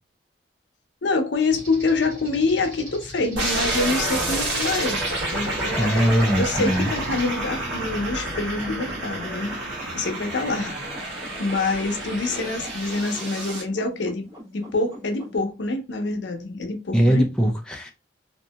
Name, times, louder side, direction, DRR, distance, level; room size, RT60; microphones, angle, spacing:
voice 1, 1.0-5.0 5.3-14.2 14.5-17.2, left 3 dB, 75° left, 0.6 m, -26 dB
sound 1, 1.5-7.3, right 1 dB, 45° right, 1.6 m, -41 dB
sound 2, 3.4-13.6, right 2 dB, 80° right, 1.2 m, -29 dB
sound 3, 5.4-15.4, equal, 20° right, 1.0 m, -44 dB
voice 2, 5.8-6.9 16.9-17.9, right 1 dB, 5° left, 0.3 m, -21 dB
2.7 x 2.6 x 2.2 m
head